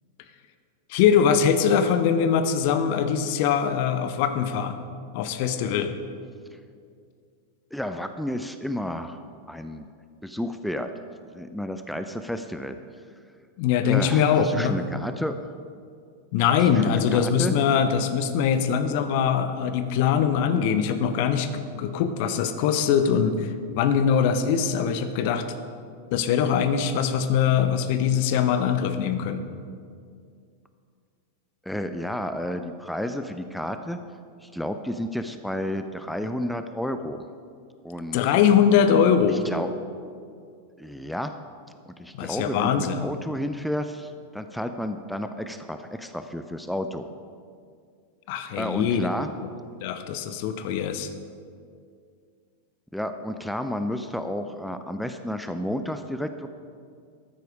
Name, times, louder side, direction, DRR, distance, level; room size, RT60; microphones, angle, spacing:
voice 1, 0.9-4.8 5.1-5.9 13.6-14.8 16.3-25.4 26.1-29.5 38.1-39.5 42.1-43.0 48.3-49.1 49.8-51.1, left 7 dB, 50° left, 10 dB, 0.8 m, -22 dB
voice 2, 7.7-9.2 9.5-9.9 10.2-10.9 11.3-12.8 13.8-15.4 16.5-17.6 31.6-34.0 34.4-37.2 37.8-38.3 39.3-39.7 40.8-41.3 41.9-47.1 48.6-49.3 52.9-56.5, equal, ahead, 8 dB, 0.5 m, -31 dB
13.0 x 9.2 x 4.9 m, 2.3 s
figure-of-eight pair, 90°, 0 cm